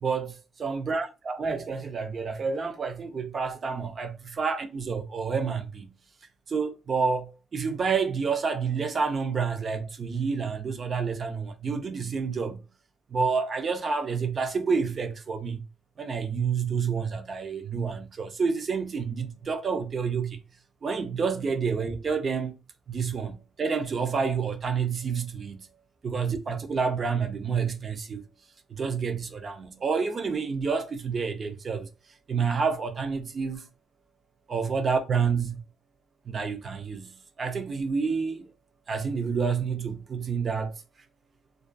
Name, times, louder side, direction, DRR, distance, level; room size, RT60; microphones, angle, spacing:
voice 1, 0.0-0.3 0.6-5.9 6.5-12.6 13.1-15.6 16.0-20.4 20.8-22.5 22.9-25.7 26.0-28.2 28.7-31.9 32.3-33.7 34.5-35.6 36.3-38.5 38.9-40.7, right 5 dB, 45° right, 0.4 m, -29 dB
2.3 x 2.2 x 2.5 m
cardioid pair, 90°, 0 cm